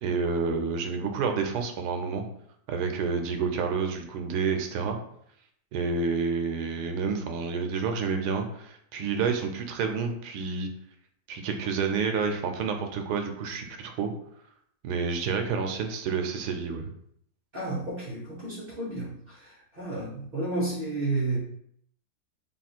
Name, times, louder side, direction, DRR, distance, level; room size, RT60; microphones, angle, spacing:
voice 1, 0.0-2.2 2.7-5.0 5.7-10.7 11.3-14.1 14.8-16.9, right 5 dB, 85° right, 5 dB, 1.1 m, -29 dB
voice 2, 17.5-21.4, right 2 dB, 40° right, -7 dB, 1.0 m, -32 dB
3.6 x 2.4 x 4.2 m, 0.69 s
omnidirectional pair, 1.7 m